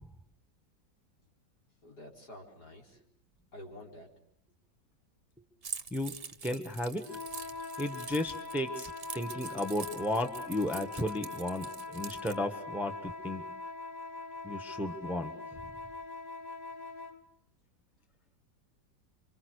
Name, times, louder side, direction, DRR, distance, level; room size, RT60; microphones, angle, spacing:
voice 1, 1.8-3.0 3.5-4.1, left 1 dB, 60° left, 0 dB, 5.2 m, -49 dB
Keys jangling, 5.6-12.4, right 6 dB, 35° right, 1.2 m, -45 dB
voice 2, 6.4-7.0 7.8-13.4 14.4-15.3, left 1 dB, ahead, 6 dB, 1.4 m, -34 dB
sound 1, 7.0-17.2, left 3 dB, 20° left, 2.4 m, -42 dB
29.5 x 25.5 x 6.6 m, 0.64 s
omnidirectional pair, 1.9 m